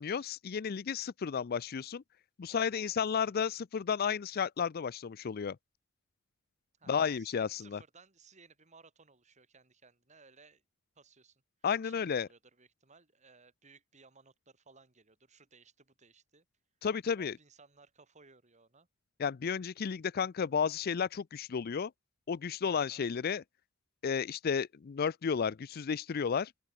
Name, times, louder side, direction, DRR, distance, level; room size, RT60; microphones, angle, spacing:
voice 1, 0.0-2.0 2.4-5.6 6.9-7.8 11.6-12.3 16.8-17.3 19.2-21.9 22.3-23.4 24.0-26.5, left 6 dB, 50° left, 0.4 m, -32 dB
voice 2, 2.5-3.0 3.3-3.6 6.8-10.6 11.0-11.4 11.8-16.5 17.2-18.9 22.7-23.1, right 4 dB, 35° right, 3.3 m, -61 dB
open air
head